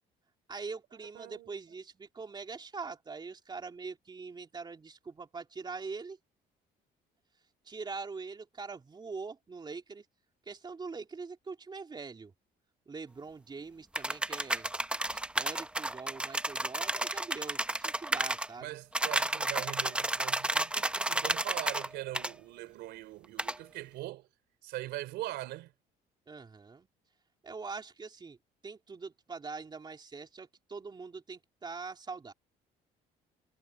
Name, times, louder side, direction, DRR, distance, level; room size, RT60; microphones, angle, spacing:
voice 1, 0.5-6.2 7.6-10.0 10.5-12.3 12.9-14.7 15.1-18.8 26.3-26.9 27.4-28.4 28.6-32.3, right 4 dB, 25° right, 3.3 m, -43 dB
voice 2, 1.1-1.5 18.6-24.3 24.6-25.7, right 16 dB, 85° right, 3.3 m, -41 dB
sound 1, 13.9-18.5 18.9-21.9 22.1-22.3 23.4-23.6, right 1 dB, 5° right, 0.7 m, -32 dB
cardioid pair, 110°, 17 cm